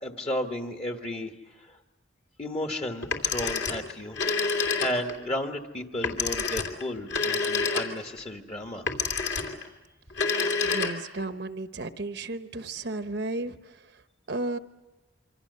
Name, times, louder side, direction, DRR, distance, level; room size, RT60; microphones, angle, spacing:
voice 1, 0.0-1.8 2.4-4.2 4.5-8.9, left 1 dB, 30° left, 5 dB, 1.5 m, -33 dB
Telephone, 3.0-5.2 6.0-8.2 8.9-9.7 10.1-11.2, left 4 dB, 60° left, 2.6 m, -28 dB
voice 2, 10.6-13.6 14.3-14.6, right 2 dB, 55° right, 10 dB, 1.0 m, -33 dB
26.5 x 25.5 x 6.8 m, 1.1 s
head